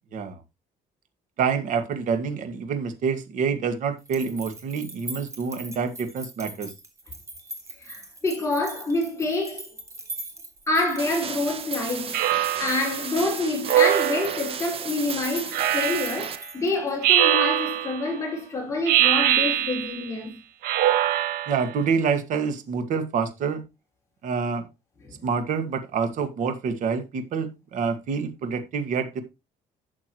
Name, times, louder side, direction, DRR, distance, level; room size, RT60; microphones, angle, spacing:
voice 1, 1.4-6.7 21.5-23.6 24.2-24.7 25.2-29.2, right 5 dB, 60° right, 1.9 m, -27 dB
sound 1, 4.0-17.0, right 1 dB, 20° right, 2.5 m, -41 dB
voice 2, 7.8-9.6 10.7-12.2 12.6-20.4 25.1-25.2, left 2 dB, 20° left, 5.1 m, -27 dB
sound 2, 11.0-16.4, right 7 dB, 40° right, 1.1 m, -35 dB
Speech synthesizer, 12.1-12.9 13.7-14.6 15.5-16.3 17.0-18.0 18.9-20.1 20.6-21.7, right 12 dB, 90° right, 1.6 m, -22 dB
12.0 x 7.3 x 3.0 m
cardioid pair, 145°, 15 cm